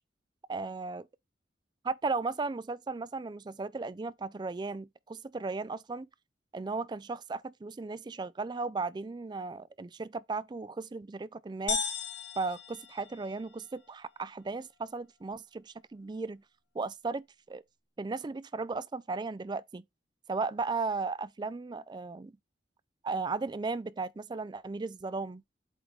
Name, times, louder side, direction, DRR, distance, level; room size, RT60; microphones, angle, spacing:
voice 1, 0.5-1.0 1.8-6.1 6.5-11.8 12.4-16.4 16.7-17.6 18.0-19.8 20.3-22.4 23.0-25.4, right 4 dB, 25° right, 0.3 m, -36 dB
sound 1, 11.7-13.6, left 6 dB, 90° left, 1.9 m, -36 dB
8.1 x 3.5 x 3.7 m
head